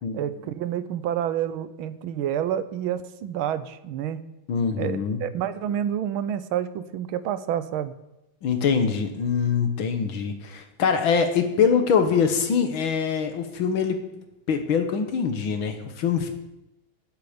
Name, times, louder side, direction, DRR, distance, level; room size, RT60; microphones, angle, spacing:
voice 1, 0.1-4.2 4.8-8.0, right 10 dB, 85° right, 13 dB, 1.6 m, -29 dB
voice 2, 4.5-5.2 8.4-14.0 14.5-16.3, left 6 dB, 75° left, 7 dB, 2.1 m, -23 dB
16.5 x 8.3 x 5.1 m, 0.93 s
omnidirectional pair, 2.2 m